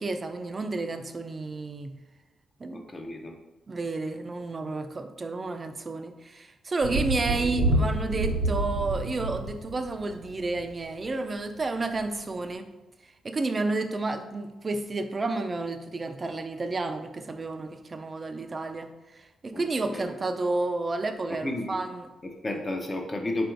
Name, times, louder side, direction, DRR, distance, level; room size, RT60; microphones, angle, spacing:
voice 1, 0.0-2.0 2.6-2.8 3.7-12.7 13.0-22.1, right 3 dB, 30° right, 7 dB, 0.4 m, -31 dB
voice 2, 2.7-3.3 7.3-7.5 19.5-20.1 21.4-21.8 22.2-23.5, left 1 dB, 25° left, 3 dB, 0.7 m, -33 dB
Thunder, 6.8-10.7 12.0-12.1, right 2 dB, 85° right, 0.7 m, -28 dB
4.5 x 2.6 x 4.4 m, 1.1 s
cardioid pair, 105°, 0 cm